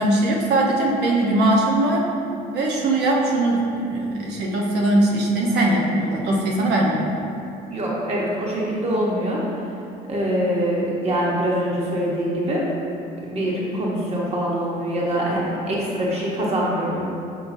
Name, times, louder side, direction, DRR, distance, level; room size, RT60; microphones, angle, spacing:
voice 1, 0.0-2.1 2.5-7.2, right 1 dB, 80° right, -2 dB, 1.1 m, -20 dB
voice 2, 7.7-9.4 10.1-12.6 13.2-17.0, equal, 40° right, -5 dB, 1.2 m, -24 dB
6.6 x 5.5 x 2.7 m, 2.6 s
cardioid pair, 110°, 17 cm